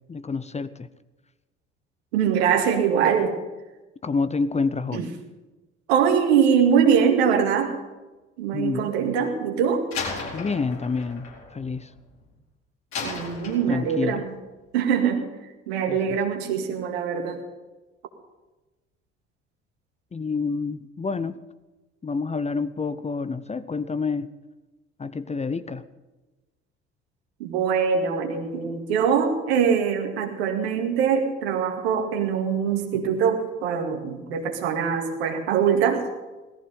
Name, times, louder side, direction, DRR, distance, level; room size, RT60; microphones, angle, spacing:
voice 1, 0.1-0.9 4.0-5.1 8.5-8.9 10.3-11.3 11.5-11.9 13.7-14.2 15.9-16.2 20.1-21.4 22.0-24.3 25.0-25.8, left 4 dB, 20° left, 13 dB, 0.8 m, -28 dB
voice 2, 2.1-3.3 4.9-5.1 5.9-7.7 8.4-9.9 13.0-14.3 14.7-15.2 15.7-17.4 27.4-36.0, right 7 dB, 75° right, 4 dB, 2.2 m, -23 dB
Slam, 9.9-12.3 12.9-14.1, left 4 dB, 60° left, 4.2 m, -35 dB
17.5 x 14.5 x 5.5 m, 1.1 s
figure-of-eight pair, 55°, 32 cm